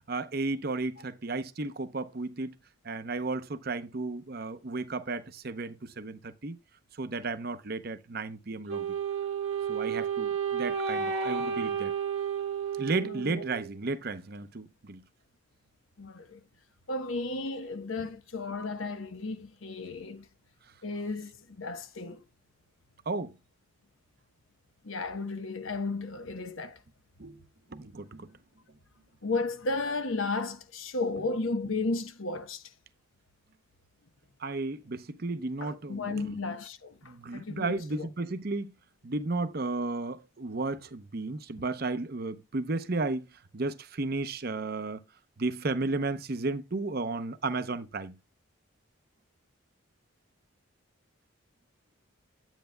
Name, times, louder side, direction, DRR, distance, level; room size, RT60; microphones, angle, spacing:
voice 1, 0.1-2.6 2.8-6.6 7.0-8.9 9.7-11.9 12.8-15.0 18.0-18.1 23.1-23.3 27.2-27.4 27.7-28.3 34.4-36.3 37.0-38.7 39.0-43.3 43.5-45.0 45.4-48.1, right 3 dB, 50° right, 0.7 m, -33 dB
Wind instrument woodwind instrument, 8.7-13.7, right 7 dB, 75° right, 1.7 m, -32 dB
voice 2, 13.0-13.4 16.0-16.4 16.9-20.3 20.8-22.2 24.8-26.8 29.2-32.6 35.6-38.1, left 3 dB, 75° left, 1.0 m, -34 dB
9.1 x 9.1 x 2.2 m
head